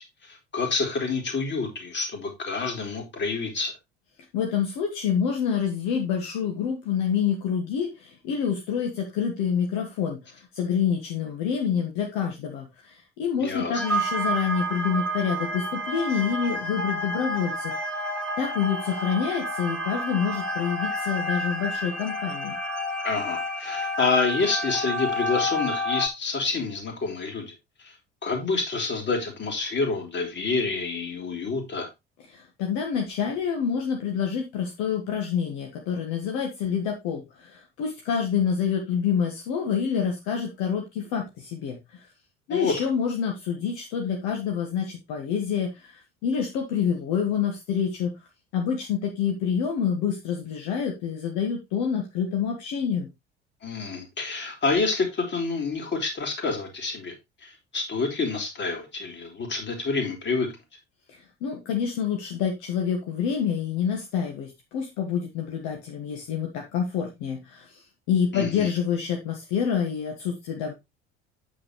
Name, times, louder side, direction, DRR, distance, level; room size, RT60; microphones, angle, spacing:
voice 1, 0.2-3.7 13.4-13.8 23.0-27.5 27.8-27.9 28.2-31.9 42.5-42.7 53.6-57.1 57.4-60.5 68.3-68.7, left 4 dB, 35° left, 3.3 m, -28 dB
voice 2, 4.3-18.1 18.4-22.6 32.3-42.1 42.5-48.1 48.5-53.1 61.1-70.7, left 7 dB, 55° left, 1.8 m, -27 dB
sound 1, 13.7-26.1, equal, 5° left, 2.8 m, -30 dB
8.7 x 7.4 x 3.1 m
figure-of-eight pair, 60°, 33 cm